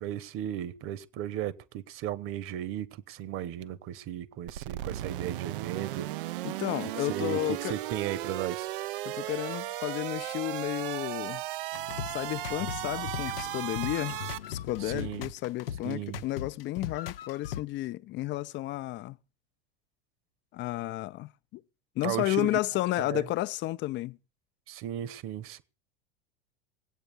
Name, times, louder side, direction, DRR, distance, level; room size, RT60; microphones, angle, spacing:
voice 1, 0.0-6.3 7.0-8.7 14.8-15.3 15.8-16.2 22.0-22.6 23.1-23.2 24.7-25.6, right 11 dB, 45° right, 1.3 m, -35 dB
sound 1, 4.5-14.4, right 15 dB, 65° right, 0.7 m, -36 dB
voice 2, 6.4-7.8 9.0-11.4 12.0-19.2 20.5-21.6 22.0-24.2, left 16 dB, 40° left, 0.7 m, -32 dB
sound 2, 11.7-17.6, left 10 dB, 70° left, 0.8 m, -39 dB
19.0 x 8.8 x 6.8 m
figure-of-eight pair, 80°, 29 cm